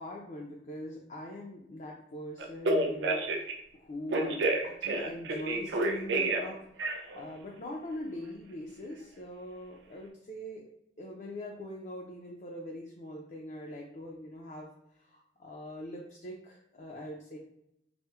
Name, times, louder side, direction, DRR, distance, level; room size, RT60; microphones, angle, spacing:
voice 1, 0.0-10.6 11.0-17.4, left 1 dB, 40° left, -1 dB, 0.4 m, -42 dB
Telephone, 2.4-3.5 4.1-6.5 6.8-7.2, right 2 dB, 80° right, 0.4 m, -29 dB
4.1 x 2.0 x 2.3 m, 0.79 s
head